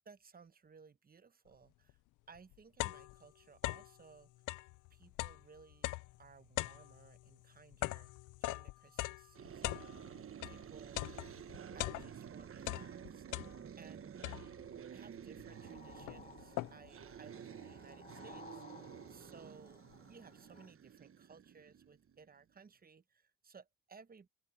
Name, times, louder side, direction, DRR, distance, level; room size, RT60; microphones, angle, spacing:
voice 1, 0.0-2.0 2.3-4.3 4.9-8.1 8.4-9.9 10.4-11.2 11.7-13.2 13.8-14.6 14.9-24.3, right 5 dB, 30° right, 1.0 m, -60 dB
sound 1, 1.9-2.0 2.4-4.0 4.4-10.6 11.0-12.3 12.6-13.9 14.2-14.8 15.4-15.5 15.8-17.0, left 19 dB, 85° left, 0.5 m, -41 dB
sound 2, 9.3-22.3, right 8 dB, 45° right, 1.3 m, -51 dB
sound 3, 15.5-20.7, left 4 dB, 30° left, 1.5 m, -58 dB
open air
cardioid pair, 90°, 30 cm